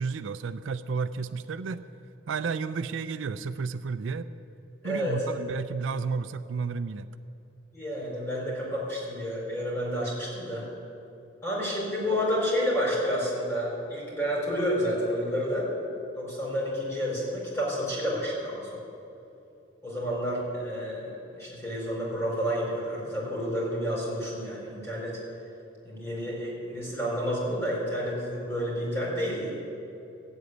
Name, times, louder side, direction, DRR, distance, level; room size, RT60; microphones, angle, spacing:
voice 1, 0.0-1.8 2.3-4.3 4.8-7.1, right 5 dB, 75° right, 12 dB, 0.4 m, -32 dB
voice 2, 4.8-5.2 7.7-10.6 11.4-15.7 16.1-18.8 19.8-25.2 25.8-29.5, equal, 15° left, -5 dB, 4.4 m, -30 dB
14.5 x 8.1 x 9.5 m, 2.8 s
head